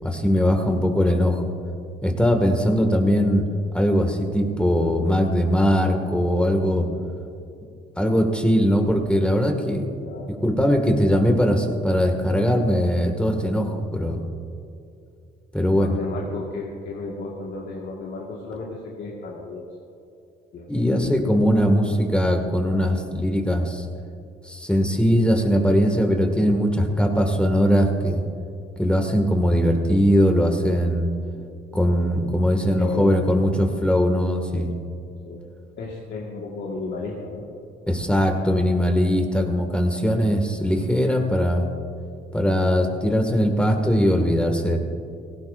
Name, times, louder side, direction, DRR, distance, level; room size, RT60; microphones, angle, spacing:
voice 1, 0.0-1.4 2.0-3.4 3.7-6.9 8.0-9.9 10.4-14.3 15.5-15.9 20.7-23.8 24.5-28.2 28.8-31.1 31.7-34.7 37.9-41.7 42.3-44.8, equal, 5° left, 4 dB, 2.2 m, -20 dB
voice 2, 10.0-10.4 15.8-19.7 20.5-21.2 32.8-33.1 35.2-35.4 35.8-37.5, left 3 dB, 65° left, -3 dB, 2.0 m, -33 dB
17.5 x 16.0 x 2.7 m, 2.6 s
supercardioid pair, 70°, 20 cm